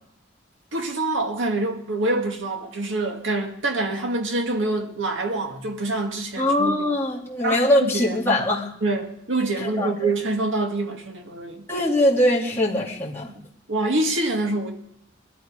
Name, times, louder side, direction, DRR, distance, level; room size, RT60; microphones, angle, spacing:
voice 1, 0.7-6.9 7.4-8.4 8.8-11.7 13.4-14.7, right 2 dB, 75° right, 2.1 m, -26 dB
voice 2, 6.4-8.7 9.6-10.1 11.7-13.3, left 1 dB, 10° left, 2.5 m, -22 dB
22.0 x 12.0 x 5.1 m
head